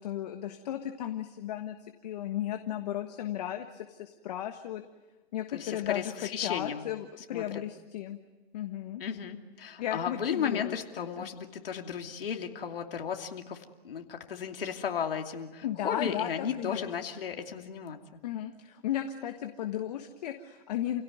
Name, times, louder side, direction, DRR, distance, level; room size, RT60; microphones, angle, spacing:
voice 1, 0.0-1.8 2.0-4.8 5.3-6.1 6.4-8.2 8.5-9.0 9.8-11.3 15.6-16.9 18.2-21.0, left 11 dB, 40° left, 7 dB, 1.5 m, -35 dB
voice 2, 5.5-6.9 7.3-7.6 9.0-18.2, left 7 dB, 65° left, 4 dB, 2.8 m, -35 dB
29.0 x 17.0 x 9.5 m, 1.2 s
hypercardioid pair, 145°, 31 cm